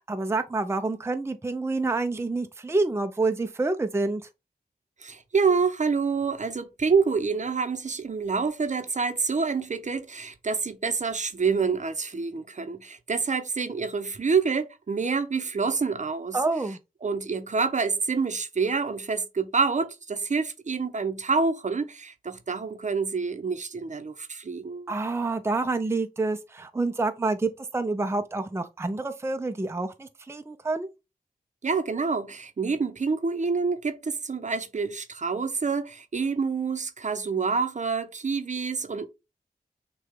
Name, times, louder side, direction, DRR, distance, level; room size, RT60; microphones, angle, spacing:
voice 1, 0.1-4.2 16.3-16.8 24.9-30.9, right 3 dB, 15° right, 0.5 m, -28 dB
voice 2, 5.0-16.4 17.0-25.0 31.6-39.1, right 5 dB, 50° right, 0.7 m, -27 dB
6.4 x 2.3 x 3.5 m
wide cardioid pair, 60°, 16 cm